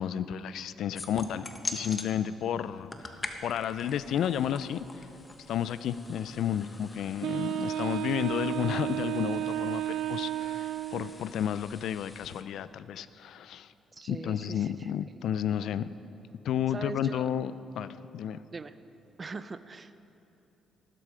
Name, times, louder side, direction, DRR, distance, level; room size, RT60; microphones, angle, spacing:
voice 1, 0.0-1.5 1.7-3.1 3.4-4.8 5.5-13.7 14.1-15.9 16.4-18.4, left 9 dB, 75° left, 15 dB, 0.4 m, -32 dB
sound 1, 0.9-2.1 2.7-12.4, left 3 dB, 30° left, 1.1 m, -44 dB
sound 2, 3.0-10.7, left 1 dB, 5° right, 2.2 m, -62 dB
Wind instrument woodwind instrument, 7.2-11.3, right 12 dB, 80° right, 0.3 m, -32 dB
voice 2, 13.9-14.9 16.7-17.3 18.5-18.7 19.2-19.9, right 4 dB, 35° right, 13 dB, 0.6 m, -41 dB
15.0 x 12.5 x 4.9 m, 3.0 s
cardioid pair, 90°, 0 cm